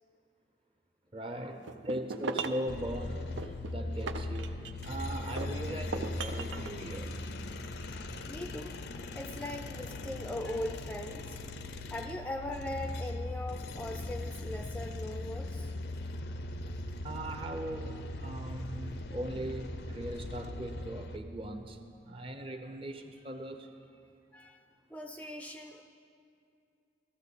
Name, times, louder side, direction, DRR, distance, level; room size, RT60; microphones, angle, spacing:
voice 1, 1.1-7.1 17.0-21.8 22.0-23.7, right 1 dB, 30° right, 6 dB, 0.7 m, -39 dB
sound 1, 1.7-2.7 3.4-4.9 5.4-6.7, right 4 dB, 85° right, 0.5 m, -38 dB
sound 2, 2.7-21.2, left 2 dB, 60° left, 0.5 m, -39 dB
voice 2, 8.3-8.8 9.1-11.4 11.9-15.7 24.3-24.6 24.9-25.8, left 1 dB, 10° left, 4 dB, 0.4 m, -40 dB
14.0 x 13.0 x 4.1 m, 2.5 s
head